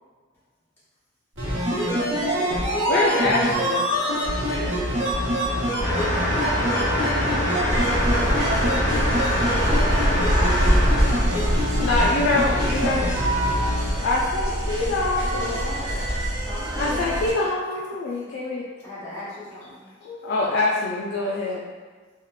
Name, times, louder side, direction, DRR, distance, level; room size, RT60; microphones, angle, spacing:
sound 1, 1.4-13.9 14.2-14.3, equal, 80° right, 0.9 m, -25 dB
voice 1, 1.8-2.7 5.5-6.5 10.8-11.6 15.2-16.1 16.5-17.2 18.8-19.8, left 1 dB, 10° left, -12 dB, 1.1 m, -38 dB
voice 2, 2.9-3.9 11.8-13.1 14.0-16.0 16.8-18.6 20.0-21.6, left 2 dB, 60° left, -4 dB, 0.3 m, -24 dB
voice 3, 4.1-5.2 8.0-9.1 12.4-13.1 16.6-17.2 19.6-19.7, left 1 dB, 75° left, -7 dB, 0.9 m, -36 dB
sound 2, 5.8-11.7, equal, 35° left, 0.8 m, -25 dB
sound 3, 7.7-17.3, equal, 20° right, 0.5 m, -25 dB
3.6 x 2.1 x 2.3 m, 1.5 s
head